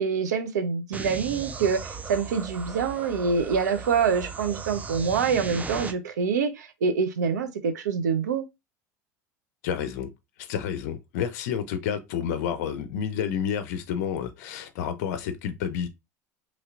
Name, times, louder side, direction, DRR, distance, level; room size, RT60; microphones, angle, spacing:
voice 1, 0.0-8.4, right 6 dB, 75° right, 0.5 m, -26 dB
sound 1, 0.9-5.9, right 4 dB, 15° right, 0.4 m, -37 dB
voice 2, 9.6-10.1 10.4-15.9, left 8 dB, 65° left, 0.5 m, -30 dB
3.1 x 2.8 x 2.4 m
figure-of-eight pair, 75°, 9 cm